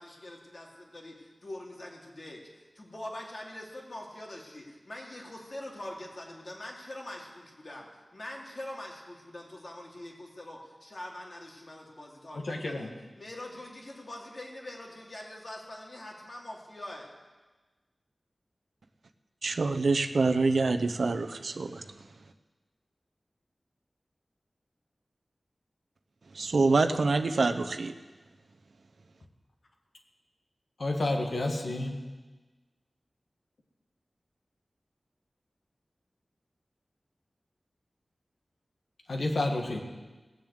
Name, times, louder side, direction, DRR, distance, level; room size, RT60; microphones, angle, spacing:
voice 1, 0.0-12.9 13.2-17.1, left 1 dB, 50° left, -1 dB, 2.6 m, -44 dB
voice 2, 12.4-12.9 30.8-32.0 39.1-39.9, left 2 dB, 70° left, 2 dB, 1.8 m, -30 dB
voice 3, 19.4-21.8 26.3-27.9, right 3 dB, 80° right, 8 dB, 0.8 m, -26 dB
17.5 x 7.3 x 8.0 m, 1.3 s
wide cardioid pair, 90°, 0 cm